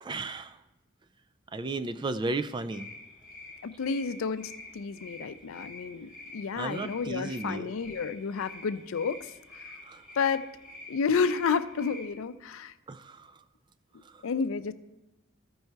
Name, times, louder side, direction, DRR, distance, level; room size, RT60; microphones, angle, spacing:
voice 1, 0.0-0.5 1.5-2.9 6.6-7.7 9.9-10.0 12.9-13.2, right 3 dB, 25° right, 10 dB, 0.3 m, -34 dB
sound 1, 2.7-12.1, left 2 dB, 5° right, 2.4 m, -47 dB
voice 2, 3.6-9.3 10.2-10.5 10.9-12.7 14.2-14.7, left 5 dB, 90° left, 13 dB, 0.4 m, -30 dB
14.0 x 5.4 x 4.6 m, 1.0 s
head